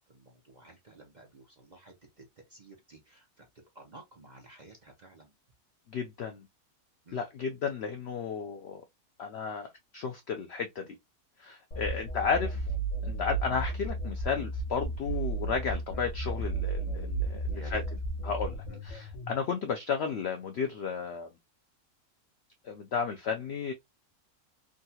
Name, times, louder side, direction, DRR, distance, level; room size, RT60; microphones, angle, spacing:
voice 1, 0.0-2.2 2.5-3.5 3.7-5.3 7.1-7.2 11.9-12.1 15.9-16.0 17.5-17.8 18.7-18.8, right 2 dB, 40° right, 0.6 m, -52 dB
voice 2, 5.9-6.4 7.1-8.8 9.2-9.7 9.9-10.9 11.4-12.6 13.0-17.8 18.2-21.3 22.6-23.7, left 6 dB, 75° left, 0.6 m, -33 dB
sound 1, 11.7-19.3, right 2 dB, 60° left, 1.1 m, -34 dB
3.7 x 2.3 x 2.7 m
omnidirectional pair, 1.6 m